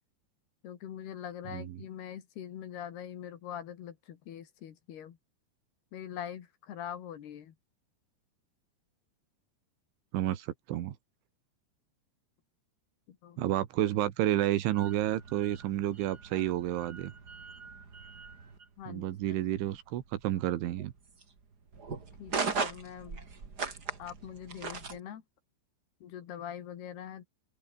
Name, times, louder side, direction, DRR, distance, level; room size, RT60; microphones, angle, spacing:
voice 1, 0.6-5.2 5.9-7.6 13.1-13.4 18.8-19.1 22.2-23.3 24.0-25.2 26.0-27.3, left 9 dB, 65° left, 3.9 m, -43 dB
voice 2, 10.1-10.9 13.4-17.1 18.9-20.9, right 13 dB, 85° right, 4.1 m, -30 dB
sound 1, 14.7-25.0, right 4 dB, 30° right, 2.3 m, -40 dB
open air
omnidirectional pair, 5.4 m